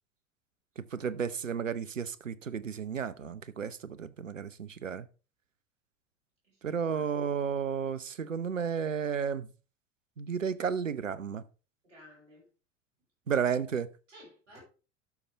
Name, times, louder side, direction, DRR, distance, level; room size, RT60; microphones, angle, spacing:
voice 1, 0.8-5.1 6.6-9.5 10.2-11.4 13.3-13.9, right 7 dB, 90° right, 0.6 m, -33 dB
voice 2, 6.4-7.3 11.8-12.5 13.5-13.6 14.1-14.6, equal, 75° right, 6.2 m, -55 dB
11.5 x 6.7 x 3.3 m
figure-of-eight pair, 75°, 37 cm